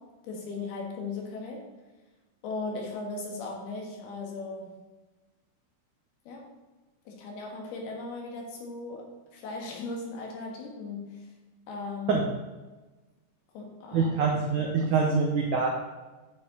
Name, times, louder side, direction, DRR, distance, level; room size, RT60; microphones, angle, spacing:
voice 1, 0.0-1.7 2.4-4.8 6.3-6.6 7.1-11.3 11.7-12.3 13.5-14.9, left 3 dB, 70° left, 0 dB, 3.3 m, -38 dB
voice 2, 13.9-15.7, right 5 dB, 80° right, 0 dB, 1.8 m, -25 dB
9.4 x 6.5 x 4.2 m, 1.2 s
omnidirectional pair, 4.9 m